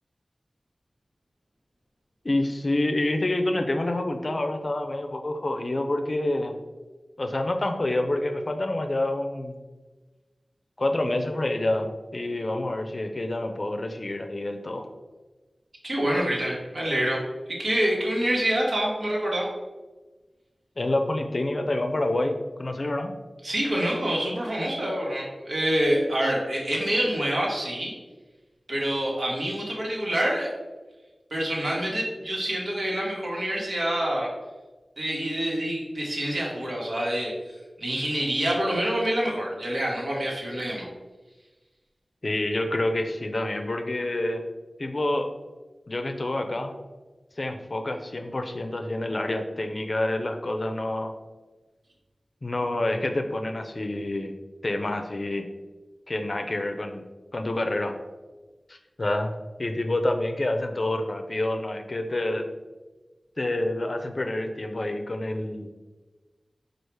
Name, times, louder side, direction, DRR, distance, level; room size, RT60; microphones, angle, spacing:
voice 1, 2.2-6.5 7.2-9.6 10.8-14.9 20.8-23.1 26.2-26.3 42.2-44.4 44.8-45.3 45.9-46.7 47.4-51.1 52.4-54.3 54.6-55.5 56.1-57.0 57.3-57.9 58.7-59.3 59.6-62.4 63.4-65.7, left 1 dB, 50° left, 6 dB, 0.5 m, -27 dB
voice 2, 15.8-17.2 17.5-19.5 23.4-27.9 28.7-30.5 31.3-34.3 35.0-37.5 37.8-40.8, right 1 dB, 65° right, -3 dB, 1.3 m, -26 dB
4.7 x 2.4 x 4.6 m, 1.2 s
wide cardioid pair, 50°, 0 cm